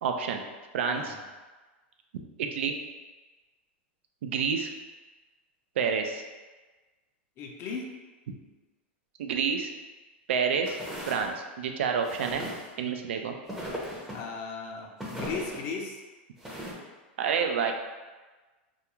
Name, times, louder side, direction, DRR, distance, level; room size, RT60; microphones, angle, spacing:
voice 1, 0.0-0.4 0.7-1.1 2.1-2.7 4.2-4.7 5.8-6.2 9.2-9.7 10.3-10.8 11.1-12.5 12.8-13.3 17.2-17.7, right 6 dB, 80° right, 4 dB, 0.3 m, -28 dB
voice 2, 7.4-7.9 14.0-16.0, left 5 dB, 40° left, 1 dB, 0.5 m, -37 dB
sound 1, 10.6-11.3 12.0-12.7 13.5-14.2 15.0-15.6 16.4-16.7, equal, 5° right, 0.6 m, -37 dB
2.3 x 2.3 x 2.9 m, 1.3 s
hypercardioid pair, 120°, 6 cm